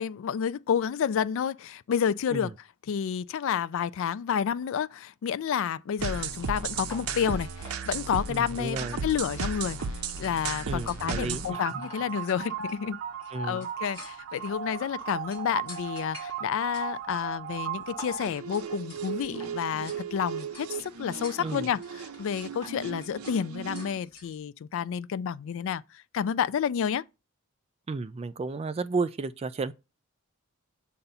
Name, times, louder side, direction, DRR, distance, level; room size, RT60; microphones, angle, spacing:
voice 1, 0.0-2.5 2.9-13.0 13.4-27.0, left 8 dB, 65° left, 0.3 m, -30 dB
sound 1, 6.0-24.0, right 6 dB, 85° right, 0.6 m, -36 dB
sound 2, 6.3-24.4, equal, 10° left, 2.5 m, -50 dB
voice 2, 8.3-9.0 10.6-11.5 13.3-13.6 21.4-21.6 27.9-29.7, right 4 dB, 30° right, 0.3 m, -32 dB
6.9 x 2.5 x 5.4 m
head